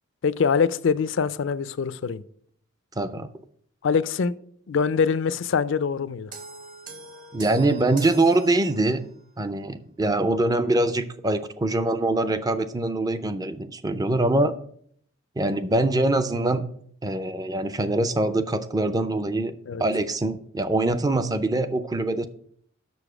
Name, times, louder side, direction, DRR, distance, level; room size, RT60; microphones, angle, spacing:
voice 1, 0.2-2.2 3.8-4.3 4.7-6.3 19.7-19.8, left 6 dB, 60° left, 0.4 m, -24 dB
voice 2, 3.0-3.3 7.3-9.1 9.4-14.5 15.4-16.7 17.0-19.5 19.8-22.3, right 2 dB, 20° right, 0.4 m, -23 dB
sound 1, 6.3-9.2, right 3 dB, 40° right, 1.0 m, -42 dB
6.9 x 6.6 x 4.9 m
head